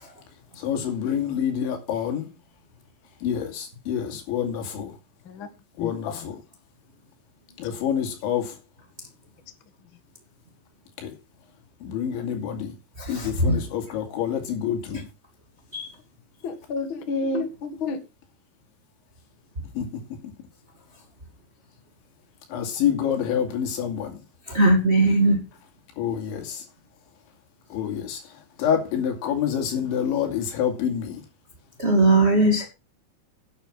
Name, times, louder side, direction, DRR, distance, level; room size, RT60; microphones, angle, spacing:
voice 1, 0.6-2.3 3.2-4.9 5.8-6.4 7.6-8.6 11.0-11.1 11.8-12.7 13.1-15.0 19.8-20.0 22.5-24.2 26.0-26.6 27.7-28.2 28.6-31.2, left 8 dB, 90° left, 4.8 m, -27 dB
voice 2, 5.8-6.2 16.4-18.0, left 3 dB, 50° left, 1.4 m, -30 dB
voice 3, 13.0-13.6 15.7-15.9 24.5-25.4 31.8-32.7, right 2 dB, 20° right, 1.9 m, -19 dB
10.5 x 9.0 x 5.7 m
omnidirectional pair, 5.2 m